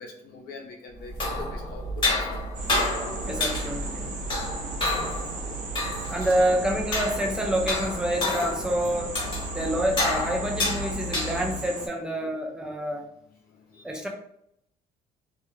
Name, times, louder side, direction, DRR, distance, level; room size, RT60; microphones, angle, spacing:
voice 1, 0.0-2.4 4.9-5.2 6.4-6.5 9.4-9.6 13.7-14.1, left 3 dB, 65° left, 1 dB, 0.7 m, -43 dB
sound 1, 1.0-11.7, left 2 dB, 30° left, 1.0 m, -30 dB
sound 2, 2.5-11.9, right 3 dB, 45° right, 0.8 m, -37 dB
voice 2, 3.2-4.2 6.1-9.1 9.5-13.1 13.8-14.1, equal, 5° right, 0 dB, 0.5 m, -27 dB
2.3 x 2.1 x 3.1 m, 0.73 s
cardioid pair, 110°, 17 cm